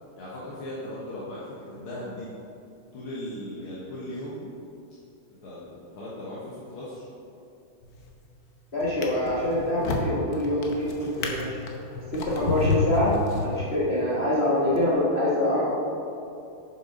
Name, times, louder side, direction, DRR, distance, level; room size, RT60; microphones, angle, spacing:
voice 1, 0.2-2.3 2.9-4.5 5.4-7.1, left 1 dB, 75° left, -8 dB, 2.2 m, -37 dB
Drawer open or close, 7.8-8.3 8.8-14.0 14.7-14.9, left 3 dB, 55° left, 1.2 m, -31 dB
voice 2, 8.7-11.6 12.1-13.2 13.4-15.7, left 1 dB, 35° left, -8 dB, 1.3 m, -25 dB
7.1 x 7.0 x 5.4 m, 2.7 s
omnidirectional pair, 2.4 m